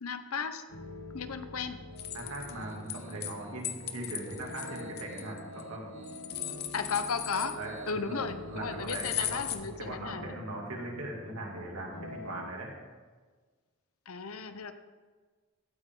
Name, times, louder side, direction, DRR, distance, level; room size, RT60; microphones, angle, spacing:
voice 1, 0.0-0.6 1.1-1.8 6.7-7.5 7.9-10.3 14.1-14.7, left 5 dB, 90° left, 9 dB, 0.9 m, -35 dB
sound 1, 0.7-12.5, left 2 dB, 65° left, 1.2 m, -47 dB
Piano, 1.9-8.8, right 4 dB, 65° right, 1.1 m, -49 dB
sound 2, 2.0-3.3 3.6-5.6 6.0-7.9 8.9-9.6, left 11 dB, 45° left, 0.8 m, -37 dB
voice 2, 2.1-5.9 7.6-8.2 8.5-12.7, right 1 dB, 85° right, -1 dB, 2.7 m, -40 dB
16.0 x 9.1 x 3.9 m, 1.4 s
head